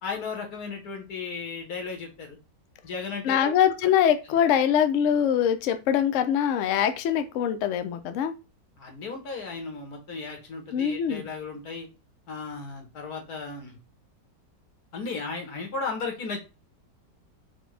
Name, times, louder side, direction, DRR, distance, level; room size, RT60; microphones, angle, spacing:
voice 1, 0.0-2.4 2.8-3.5 8.8-11.9 12.3-13.8 14.9-16.4, left 4 dB, 60° left, 2 dB, 1.7 m, -35 dB
voice 2, 3.2-8.3 10.7-11.3, left 9 dB, 80° left, 8 dB, 0.7 m, -23 dB
5.0 x 2.3 x 3.2 m, 0.28 s
omnidirectional pair, 1.9 m